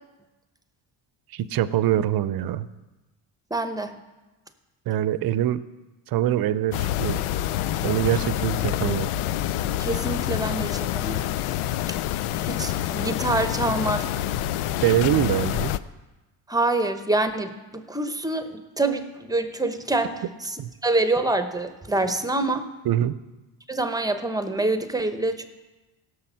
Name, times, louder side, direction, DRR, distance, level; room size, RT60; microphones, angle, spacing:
voice 1, 1.3-2.7 4.9-5.6 6.1-7.2 7.8-9.1 14.8-15.7 20.6-20.7 22.9-23.2, right 12 dB, 50° right, 16 dB, 0.6 m, -24 dB
voice 2, 3.5-4.0 9.8-11.3 12.4-14.1 16.5-20.6 20.8-22.7 23.7-25.5, right 2 dB, 10° right, 9 dB, 0.8 m, -26 dB
sound 1, 6.7-15.8, left 13 dB, 85° left, 0.6 m, -27 dB
16.5 x 6.9 x 5.6 m, 1.1 s
cardioid pair, 115°, 49 cm